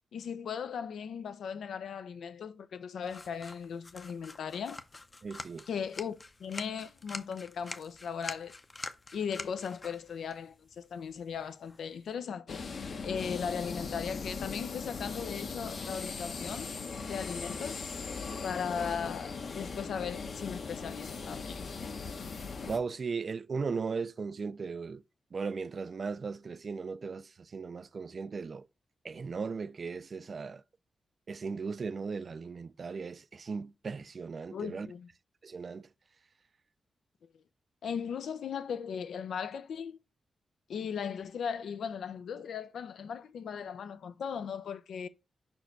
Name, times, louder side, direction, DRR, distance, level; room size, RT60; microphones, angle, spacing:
voice 1, 0.1-4.8 5.7-8.5 9.1-12.6 13.0-16.7 17.1-17.8 18.4-21.6 34.5-35.1 37.8-40.0 40.7-45.1, left 7 dB, 85° left, 0.6 m, -37 dB
sound 1, 3.0-12.1, left 3 dB, 30° left, 0.6 m, -47 dB
voice 2, 5.2-5.6 22.7-25.0 25.3-28.6 29.0-30.6 31.3-34.9 35.4-35.9, right 5 dB, 45° right, 0.3 m, -37 dB
sound 2, 12.5-22.8, left 4 dB, 55° left, 0.9 m, -39 dB
5.3 x 4.5 x 4.5 m
wide cardioid pair, 125°, 0 cm